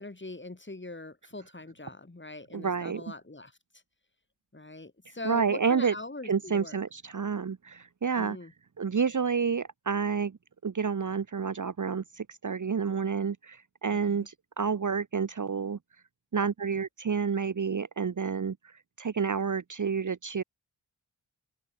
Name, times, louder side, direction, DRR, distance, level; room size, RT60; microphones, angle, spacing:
voice 1, 0.0-3.6 4.5-6.8 8.2-8.5 13.9-14.3, left 2 dB, 25° left, 4.0 m, -42 dB
voice 2, 2.5-3.0 5.2-5.9 6.2-8.4 8.8-10.4 10.6-15.8 16.3-18.6 19.0-20.4, right 6 dB, 40° right, 1.1 m, -29 dB
open air
cardioid pair, 45°, 46 cm